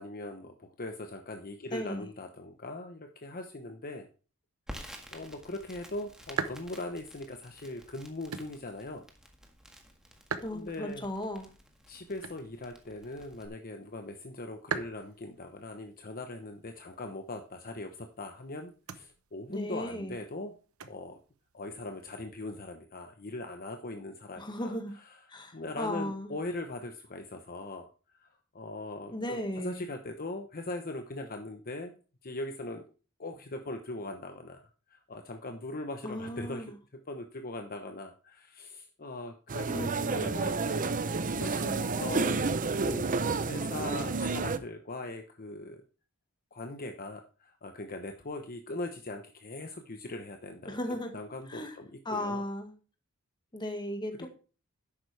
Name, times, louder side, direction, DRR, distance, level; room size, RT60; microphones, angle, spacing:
voice 1, 0.0-4.1 5.1-9.0 10.5-11.1 11.9-20.5 20.8-21.2 21.5-29.4 29.6-31.9 32.2-32.8 33.2-34.6 34.9-36.7 37.1-40.8 41.2-42.5 42.8-43.1 43.4-45.8 46.5-52.4 54.2-54.3, left 2 dB, 45° left, 0.9 m, -40 dB
voice 2, 1.7-2.1 10.4-11.5 19.5-20.1 24.4-24.9 25.3-26.3 29.1-29.8 36.0-36.7 39.7-40.4 50.7-51.1 51.5-51.7 52.1-52.7 53.5-54.3, left 1 dB, 20° left, 1.7 m, -36 dB
Crackle, 4.7-13.5, equal, 5° right, 1.7 m, -51 dB
sound 1, 5.1-22.2, right 5 dB, 85° right, 1.0 m, -45 dB
sound 2, 39.5-44.6, right 4 dB, 40° right, 0.7 m, -30 dB
11.0 x 8.6 x 3.4 m
head